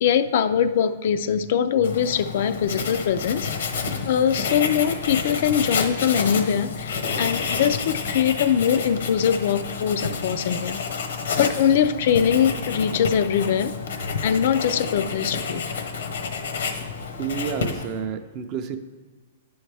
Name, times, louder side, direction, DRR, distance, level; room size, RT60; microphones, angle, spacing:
voice 1, 0.0-3.5 4.1-10.8 11.4-13.8 14.2-15.6, left 8 dB, 50° left, 11 dB, 0.4 m, -22 dB
Writing, 1.8-18.0, left 5 dB, 75° left, 0.9 m, -29 dB
voice 2, 17.2-18.8, right 6 dB, 25° right, 8 dB, 0.5 m, -30 dB
9.8 x 6.3 x 3.4 m, 1.4 s
hypercardioid pair, 170°, 0 cm